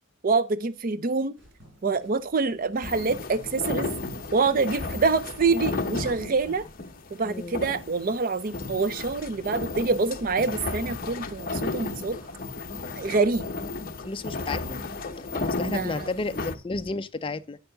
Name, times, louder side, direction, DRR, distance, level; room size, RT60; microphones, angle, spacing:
voice 1, 0.2-1.4 1.8-3.9 4.3-6.6 7.2-12.2 12.9-13.4 15.6-16.1, right 4 dB, 45° right, 0.5 m, -26 dB
sound 1, 1.4-13.4, equal, 75° right, 4.7 m, -57 dB
sound 2, 2.8-16.6, left 3 dB, 45° left, 0.8 m, -34 dB
voice 2, 7.2-7.6 14.0-17.6, left 3 dB, 25° left, 0.4 m, -33 dB
8.8 x 6.9 x 3.9 m
head